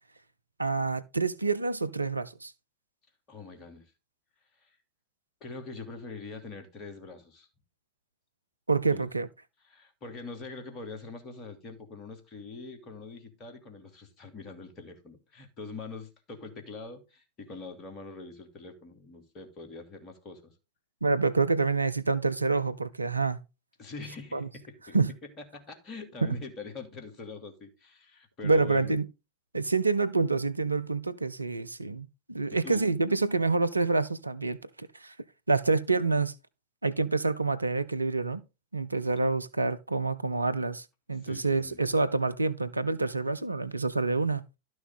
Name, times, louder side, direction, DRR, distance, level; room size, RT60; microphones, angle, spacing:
voice 1, 0.6-2.5 8.7-9.3 21.0-23.4 24.3-24.5 24.9-25.1 26.2-26.3 28.4-29.1 29.5-35.1 35.5-36.3 36.8-38.4 38.7-44.4, right 3 dB, 80° right, 0.6 m, -27 dB
voice 2, 3.3-3.9 4.6-4.8 5.4-7.5 8.9-9.1 9.6-20.5 23.8-25.0 25.2-28.9 32.6-32.9 41.2-41.8, left 3 dB, 30° left, 2.8 m, -44 dB
12.5 x 6.4 x 4.0 m
figure-of-eight pair, 90°, 0 cm